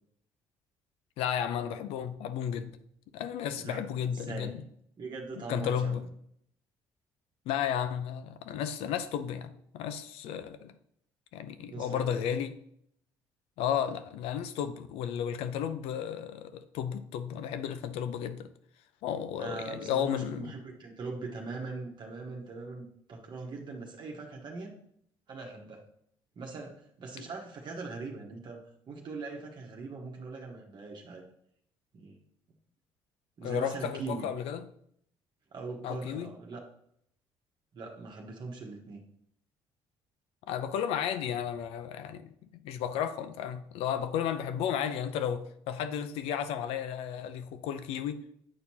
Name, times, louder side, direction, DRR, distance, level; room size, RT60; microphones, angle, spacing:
voice 1, 1.2-2.7 3.1-4.6 5.5-6.1 7.5-10.7 11.3-12.6 13.6-18.5 19.0-20.5 33.4-34.6 35.8-36.3 40.5-42.3 42.6-48.2, left 8 dB, 80° left, 0.5 m, -33 dB
voice 2, 3.6-4.6 5.0-6.1 11.7-12.0 19.4-24.8 25.3-25.8 26.4-28.6 28.9-31.3 31.9-32.2 33.4-34.3 35.5-36.6 37.7-39.0, right 3 dB, 50° right, 1.2 m, -41 dB
8.5 x 4.4 x 2.8 m
supercardioid pair, 75°, 10 cm